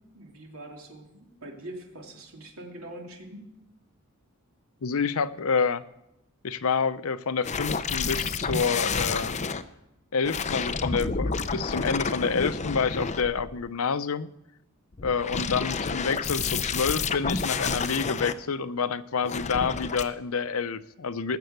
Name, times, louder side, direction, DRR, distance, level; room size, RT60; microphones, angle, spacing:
voice 1, 0.1-3.5, right 1 dB, 75° right, 1 dB, 2.9 m, -43 dB
voice 2, 4.8-5.8 6.4-9.3 10.1-14.3 15.0-21.4, left 5 dB, 75° left, 14 dB, 0.6 m, -28 dB
sound 1, 7.4-9.6 10.2-13.7 14.9-18.3 19.2-20.0, left 5 dB, 35° left, 0.6 m, -30 dB
19.0 x 6.9 x 7.9 m, 0.88 s
head